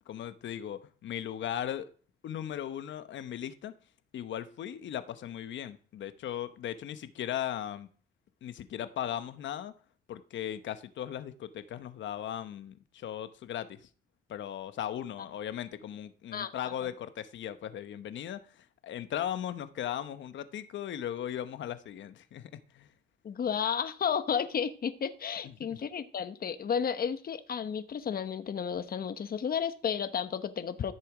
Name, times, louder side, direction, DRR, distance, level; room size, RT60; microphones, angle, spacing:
voice 1, 0.1-1.9 2.2-3.7 4.1-7.9 8.4-9.7 10.1-13.9 14.3-22.9 25.4-25.8, left 10 dB, 70° left, 1.0 m, -38 dB
voice 2, 23.2-30.9, left 7 dB, 50° left, 1.1 m, -32 dB
14.0 x 6.8 x 5.0 m
cardioid pair, 90°, 20 cm